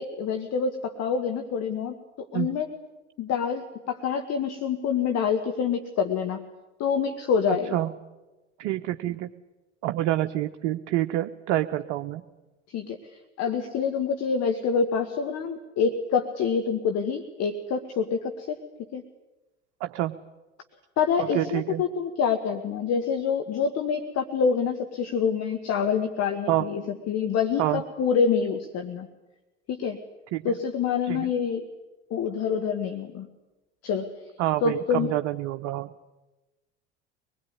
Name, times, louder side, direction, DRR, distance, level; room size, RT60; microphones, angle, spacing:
voice 1, 0.0-1.9 2.3-2.7 3.2-6.4 6.8-7.8 12.7-13.0 13.4-18.6 18.9-19.0 21.0-29.1 29.7-30.0 30.4-31.6 32.1-33.3 33.8-34.1 34.6-35.1, left 6 dB, 45° left, 7 dB, 1.8 m, -26 dB
voice 2, 8.6-9.3 9.8-12.2 19.8-20.1 21.3-21.8 26.5-26.6 27.6-27.8 30.3-30.5 31.1-31.3 34.4-35.9, right 14 dB, 60° right, 7 dB, 1.0 m, -27 dB
24.5 x 20.5 x 9.7 m, 1.1 s
figure-of-eight pair, 65°, 34 cm